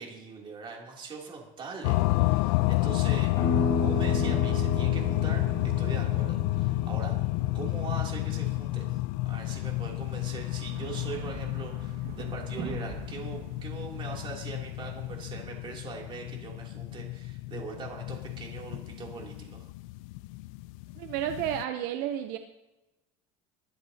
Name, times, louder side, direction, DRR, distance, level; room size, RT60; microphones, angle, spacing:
voice 1, 0.0-3.3 3.8-7.2 7.5-19.7, right 4 dB, 30° right, -1 dB, 3.1 m, -41 dB
sound 1, 1.8-21.6, left 20 dB, 80° left, 0.4 m, -30 dB
sound 2, 3.3-8.9, equal, 20° left, 5.3 m, -35 dB
sound 3, 9.6-15.4, right 7 dB, 90° right, 2.0 m, -44 dB
voice 2, 21.0-22.4, right 11 dB, 65° right, 7 dB, 0.8 m, -31 dB
22.0 x 11.0 x 2.9 m, 0.99 s
cardioid pair, 145°, 17 cm